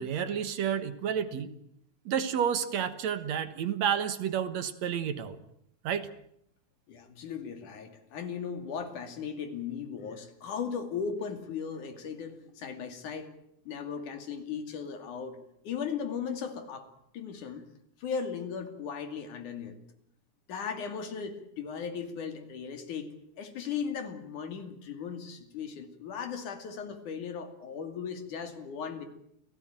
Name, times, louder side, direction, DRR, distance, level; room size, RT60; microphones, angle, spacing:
voice 1, 0.0-1.5 2.1-5.4 5.8-6.1, right 8 dB, 65° right, 12 dB, 2.6 m, -30 dB
voice 2, 6.9-13.3 13.7-15.4 15.6-16.9 17.1-17.7 18.0-19.8 20.5-23.1 23.4-29.1, left 6 dB, 85° left, 7 dB, 4.1 m, -37 dB
29.0 x 17.5 x 9.0 m, 0.74 s
omnidirectional pair, 3.4 m